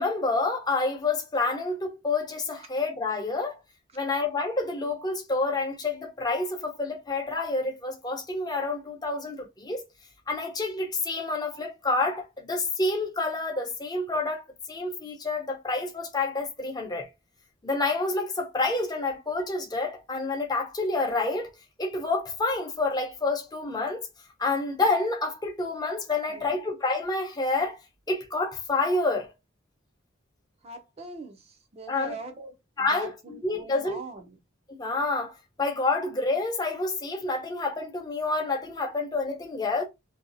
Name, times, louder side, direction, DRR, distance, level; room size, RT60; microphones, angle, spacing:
voice 1, 0.0-3.6 3.9-9.8 10.3-17.1 17.6-21.5 21.8-24.1 24.4-27.8 28.1-29.3 31.9-32.1 32.8-34.0 34.7-39.8, left 3 dB, 20° left, 0.7 m, -28 dB
voice 2, 30.6-34.4, right 3 dB, 30° right, 0.5 m, -42 dB
2.7 x 2.3 x 2.6 m
head